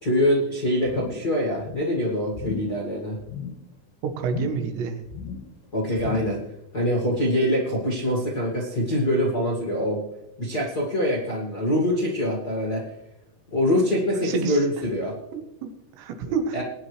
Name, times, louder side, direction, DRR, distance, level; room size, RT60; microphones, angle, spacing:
voice 1, 0.0-3.2 5.7-6.4 6.7-10.0 10.4-12.9 13.5-15.2 16.2-16.6, equal, 50° left, -2 dB, 1.1 m, -24 dB
sound 1, 0.9-1.4 1.6-2.0 2.3-2.8 3.2-3.7 4.2-4.8 5.1-5.6 6.0-6.5 6.9-7.0, left 6 dB, 75° left, 2.6 m, -35 dB
voice 2, 4.0-5.0 14.2-14.6 15.3-15.7 16.0-16.6, right 6 dB, 80° right, 5 dB, 3.4 m, -28 dB
21.0 x 9.6 x 3.2 m, 0.93 s
omnidirectional pair, 5.0 m